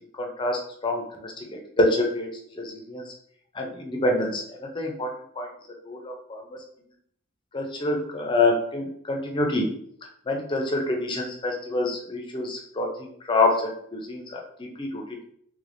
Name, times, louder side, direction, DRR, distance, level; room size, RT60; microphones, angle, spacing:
voice 1, 0.1-2.3 2.6-3.1 3.5-5.1 5.4-5.5 5.9-6.6 7.5-9.7 10.3-15.2, left 2 dB, 20° left, 1 dB, 0.5 m, -27 dB
3.4 x 3.3 x 2.5 m, 0.67 s
head